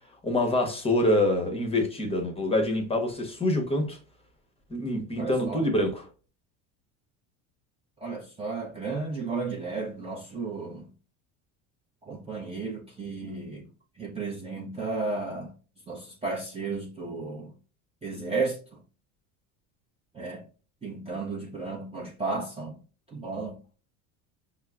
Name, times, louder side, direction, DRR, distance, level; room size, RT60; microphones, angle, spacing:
voice 1, 0.2-4.0 4.7-6.0, left 1 dB, 15° left, 0.9 m, -26 dB
voice 2, 5.2-5.6 8.0-10.9 12.1-13.7 14.0-15.5 15.9-17.5 18.0-18.6 20.1-20.4 20.8-22.8 23.1-23.6, right 3 dB, 15° right, 0.6 m, -33 dB
5.4 x 2.0 x 2.3 m
supercardioid pair, 95°, 42 cm